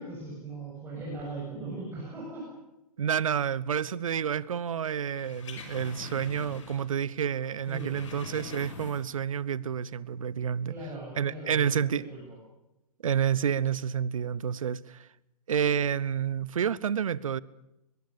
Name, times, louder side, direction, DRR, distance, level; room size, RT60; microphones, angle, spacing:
voice 1, 0.0-2.5 7.7-7.9 10.7-12.4, right 2 dB, 10° right, 7.2 m, -39 dB
voice 2, 3.0-10.7 11.2-12.0 13.0-15.1 15.5-17.4, right 8 dB, 60° right, 1.0 m, -29 dB
sound 1, 5.0-7.0 7.3-9.3 9.6-9.7, left 4 dB, 50° left, 5.8 m, -44 dB
23.5 x 22.0 x 6.9 m
figure-of-eight pair, 115°, 20 cm